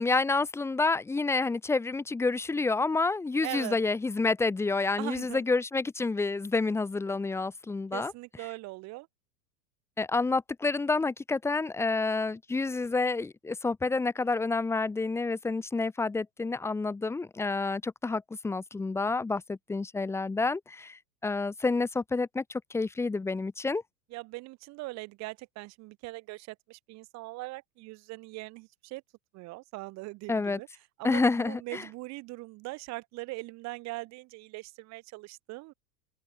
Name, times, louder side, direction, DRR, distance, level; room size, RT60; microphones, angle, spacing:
voice 1, 0.0-8.1 10.0-23.8 30.3-30.6 31.0-31.8, left 3 dB, 5° left, 1.0 m, -29 dB
voice 2, 3.4-3.8 5.0-5.4 7.9-9.1 24.1-29.0 29.3-30.7 31.0-35.7, right 22 dB, 30° right, 2.0 m, -41 dB
supercardioid pair, 160°, 49 cm